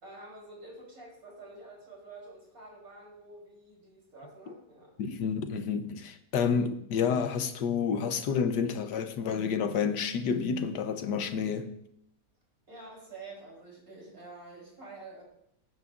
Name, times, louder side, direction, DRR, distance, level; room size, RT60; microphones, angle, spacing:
voice 1, 0.0-5.0 12.7-15.2, right 2 dB, 55° right, 4.3 m, -48 dB
voice 2, 5.0-11.7, left 6 dB, 80° left, 1.5 m, -29 dB
18.5 x 9.8 x 2.5 m
omnidirectional pair, 1.8 m